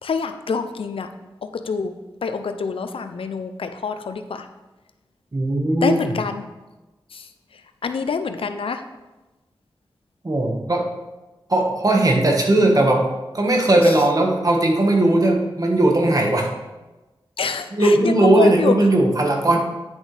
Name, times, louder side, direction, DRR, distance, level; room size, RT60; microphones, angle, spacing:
voice 1, 0.0-1.1 1.4-1.9 2.2-4.5 5.8-6.5 7.1-7.3 7.8-8.8 13.8-13.9 17.4-18.7, left 5 dB, 85° left, 9 dB, 0.5 m, -26 dB
voice 2, 5.3-6.1 10.2-10.9 11.5-13.1 13.3-16.5 17.7-19.6, right 1 dB, 40° right, 1 dB, 1.5 m, -18 dB
10.0 x 6.3 x 3.4 m, 1.1 s
cardioid pair, 50°, 9 cm